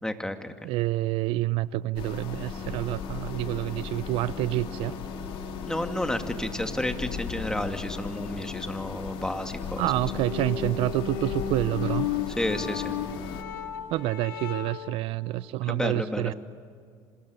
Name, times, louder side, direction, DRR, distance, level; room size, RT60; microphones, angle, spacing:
voice 1, 0.0-0.5 5.7-10.2 12.3-13.0 15.7-16.3, left 1 dB, 5° left, 6 dB, 2.3 m, -31 dB
voice 2, 0.6-4.9 9.8-12.2 13.9-16.3, right 16 dB, 65° right, 18 dB, 0.6 m, -28 dB
sound 1, 2.0-13.4, left 6 dB, 65° left, 3.1 m, -36 dB
sound 2, 9.9-14.9, left 9 dB, 90° left, 3.2 m, -34 dB
26.5 x 20.5 x 9.6 m, 2.2 s
hypercardioid pair, 75°, 10 cm